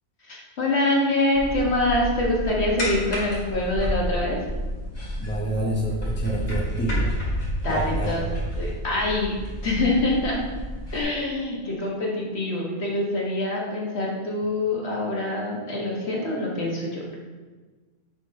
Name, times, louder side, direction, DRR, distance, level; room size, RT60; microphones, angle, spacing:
voice 1, 0.2-4.4 7.6-8.3 8.6-9.4 9.6-10.4 10.9-17.0, left 2 dB, 70° left, -3 dB, 1.7 m, -25 dB
sound 1, 1.3-11.0, equal, 40° left, 1.6 m, -30 dB
voice 2, 5.2-7.1 7.7-8.2, right 1 dB, 10° left, -3 dB, 0.9 m, -28 dB
6.2 x 4.1 x 5.1 m, 1.3 s
omnidirectional pair, 1.2 m